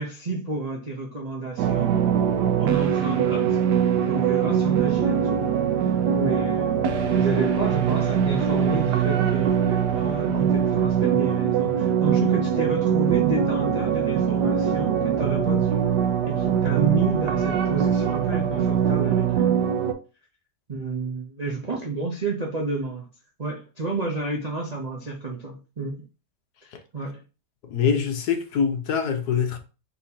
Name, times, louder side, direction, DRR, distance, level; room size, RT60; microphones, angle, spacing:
voice 1, 0.0-2.0 2.6-3.6 4.0-5.5 5.8-6.8 7.1-15.8 16.2-19.6 20.7-23.1 23.4-26.0 26.9-27.2, right 3 dB, 45° right, 0.5 m, -30 dB
sound 1, 1.6-19.9, right 8 dB, 85° right, 1.2 m, -22 dB
voice 2, 27.6-29.6, left 7 dB, 75° left, 1.3 m, -24 dB
4.1 x 2.8 x 4.1 m
omnidirectional pair, 1.8 m